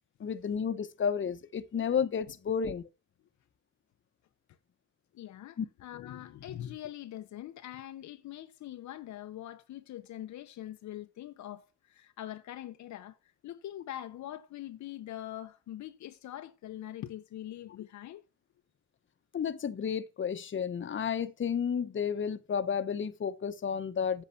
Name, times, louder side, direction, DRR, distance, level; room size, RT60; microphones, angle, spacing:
voice 1, 0.2-2.8 5.6-5.7 19.3-24.2, left 7 dB, 40° left, 1.1 m, -32 dB
voice 2, 5.1-13.2 13.4-18.2, left 12 dB, 70° left, 0.9 m, -43 dB
8.5 x 7.4 x 5.9 m
cardioid pair, 90°, 30 cm